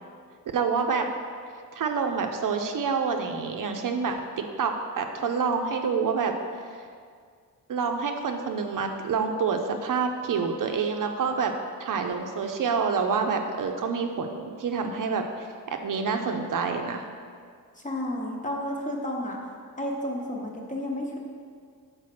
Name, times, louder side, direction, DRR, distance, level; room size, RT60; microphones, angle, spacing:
voice 1, 0.5-1.0 1.7-6.3 6.8-6.9 7.7-11.5 11.8-17.0, right 5 dB, 60° right, 4 dB, 0.6 m, -27 dB
voice 2, 17.8-19.4 19.8-21.2, left 1 dB, 20° left, -2 dB, 1.0 m, -31 dB
6.3 x 4.7 x 5.9 m, 2.1 s
wide cardioid pair, 150°, 36 cm